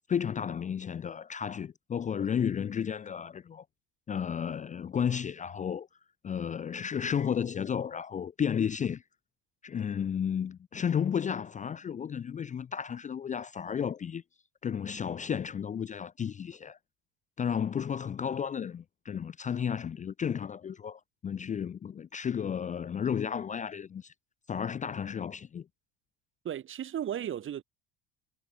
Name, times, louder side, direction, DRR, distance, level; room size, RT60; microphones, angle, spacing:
voice 1, 0.0-3.6 4.1-5.9 6.2-9.0 9.6-14.2 14.6-16.8 17.4-24.1 24.5-25.7, left 8 dB, 25° left, 0.6 m, -33 dB
voice 2, 26.4-27.6, right 10 dB, 40° right, 2.1 m, -35 dB
supercardioid pair, 105°, 31 cm